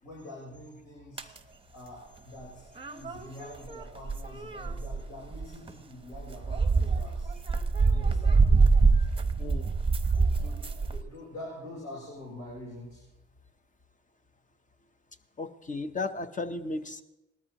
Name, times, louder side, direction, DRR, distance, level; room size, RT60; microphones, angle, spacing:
voice 1, 0.0-1.3 1.7-7.3 7.6-8.4 8.8-9.1 10.3-13.0, left 1 dB, 65° left, -4 dB, 4.4 m, -45 dB
sound 1, 1.2-1.4 2.8-5.7 6.1-11.0, right 4 dB, 20° right, 0.8 m, -25 dB
voice 2, 9.4-9.7 15.4-17.0, left 3 dB, 25° left, 9 dB, 0.8 m, -35 dB
19.0 x 13.5 x 3.0 m, 0.98 s
cardioid pair, 90°, 30 cm